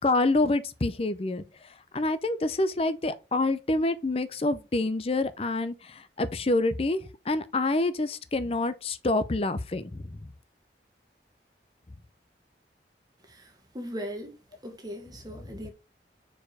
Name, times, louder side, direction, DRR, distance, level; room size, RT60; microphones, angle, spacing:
voice 1, 0.0-1.4 1.9-7.0 7.3-10.2, left 2 dB, 35° left, 0.5 m, -27 dB
voice 2, 13.2-14.4 14.6-15.7, equal, 20° right, 1.4 m, -39 dB
4.9 x 4.5 x 4.8 m
head